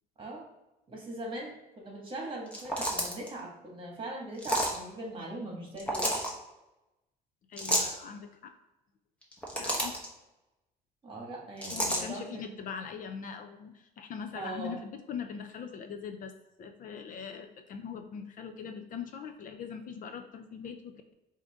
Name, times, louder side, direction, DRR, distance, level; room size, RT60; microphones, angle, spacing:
voice 1, 0.9-6.2 11.0-12.5 14.3-14.8, right 1 dB, 30° right, -1 dB, 1.6 m, -40 dB
sound 1, 2.5-3.3 4.4-4.8 5.8-6.3 7.6-8.0 9.2-10.1 11.6-12.0, equal, 5° left, 1.0 m, -30 dB
voice 2, 7.5-8.5 9.6-10.0 11.7-16.3 16.6-21.1, left 6 dB, 55° left, 7 dB, 0.5 m, -41 dB
4.9 x 2.7 x 3.5 m, 0.97 s
cardioid pair, 110°, 17 cm